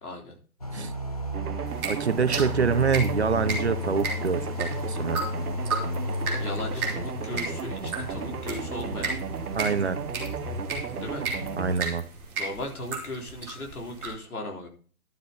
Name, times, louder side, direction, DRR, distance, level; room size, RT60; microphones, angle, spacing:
voice 1, 0.0-0.4 6.4-9.2 11.0-11.3 12.4-14.7, left 1 dB, 80° left, 1 dB, 3.9 m, -37 dB
sound 1, 0.6-11.9, left 2 dB, 25° left, 0.7 m, -34 dB
sound 2, 1.3-11.7, right 7 dB, 85° right, 1.1 m, -36 dB
sound 3, 1.7-14.1, right 3 dB, 5° right, 1.4 m, -36 dB
voice 2, 1.9-5.2 9.5-10.0 11.6-12.1, right 5 dB, 50° right, 14 dB, 0.6 m, -26 dB
11.5 x 8.2 x 4.0 m, 0.41 s
hypercardioid pair, 175°, 44 cm